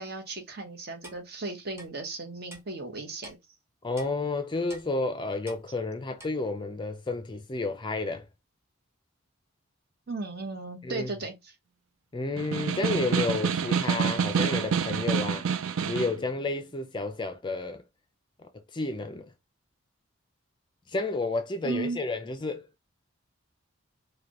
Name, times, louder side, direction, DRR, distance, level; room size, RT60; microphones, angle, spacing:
voice 1, 0.0-3.4 10.1-11.5 21.6-22.0, right 3 dB, 50° right, 0.9 m, -36 dB
Clock, 1.0-1.2 1.8-1.9 2.5-2.6 3.2-3.4 4.0-4.1 4.7-4.9 5.5-5.6 6.2-6.3, right 1 dB, 15° right, 0.8 m, -46 dB
voice 2, 3.8-8.3 10.8-11.1 12.1-15.5 15.9-17.8 18.7-19.3 20.9-22.7, left 3 dB, 20° left, 0.4 m, -31 dB
Snare drum, 12.4-16.2, right 7 dB, 75° right, 0.4 m, -27 dB
4.9 x 2.2 x 2.9 m
head